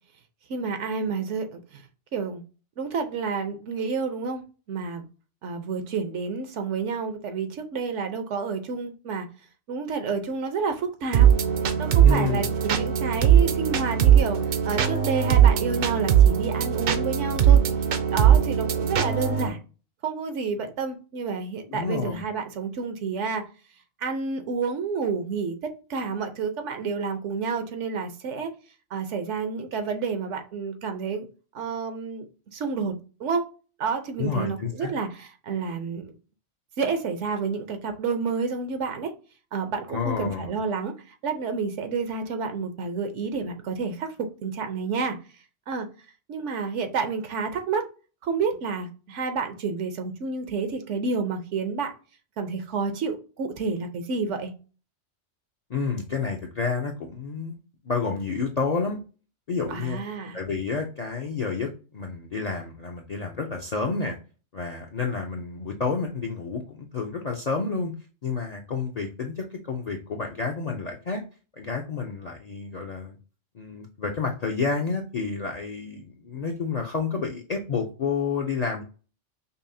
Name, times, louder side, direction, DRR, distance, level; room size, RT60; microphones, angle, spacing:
voice 1, 0.5-1.8 2.1-2.4 2.8-5.0 5.4-9.3 9.7-11.3 11.8-17.6 18.1-19.6 20.0-23.5 24.0-25.6 25.9-28.5 28.9-31.3 31.5-32.3 32.5-32.9 33.2-33.4 33.8-36.1 36.8-39.1 39.5-45.2 45.7-45.9 46.3-47.9 48.2-51.9 52.4-54.5 59.7-60.4, right 5 dB, 80° right, 1.0 m, -29 dB
sound 1, 11.1-19.5, right 9 dB, 60° right, 0.6 m, -20 dB
voice 2, 12.0-12.5 21.7-22.2 34.2-34.9 39.9-40.5 55.7-57.6 57.8-59.0 59.5-60.0 60.3-64.2 64.5-67.9 68.2-71.2 71.5-73.2 73.5-78.8, left 4 dB, 50° left, 0.5 m, -29 dB
5.4 x 2.0 x 2.6 m
omnidirectional pair, 1.2 m